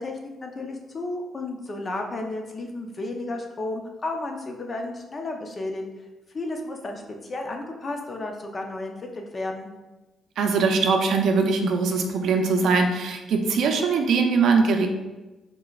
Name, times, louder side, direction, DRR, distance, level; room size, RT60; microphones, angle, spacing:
voice 1, 0.0-5.8 6.3-9.7, left 2 dB, 35° left, 3 dB, 0.7 m, -33 dB
voice 2, 10.4-14.9, right 4 dB, 70° right, 3 dB, 0.5 m, -21 dB
4.8 x 3.7 x 2.4 m, 1.1 s
cardioid pair, 90°, 0 cm